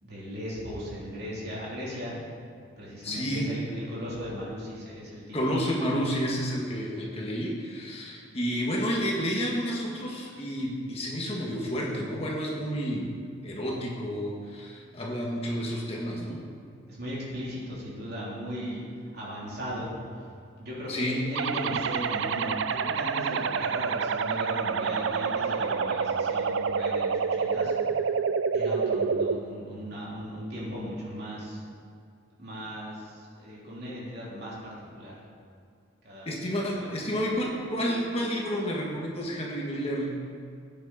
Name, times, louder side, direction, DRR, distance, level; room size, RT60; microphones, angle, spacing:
voice 1, 0.0-2.2 2.8-5.6 16.9-18.8 19.1-19.9 20.6-27.7 28.5-31.6 32.4-35.2 36.0-36.9, equal, 50° right, -6 dB, 3.5 m, -37 dB
voice 2, 3.0-3.5 5.3-13.1 13.4-16.4 20.9-21.2 36.2-40.2, equal, 30° left, -2 dB, 1.7 m, -30 dB
sound 1, 21.3-29.3, right 5 dB, 70° right, 0.4 m, -28 dB
15.0 x 9.4 x 4.3 m, 2.3 s
head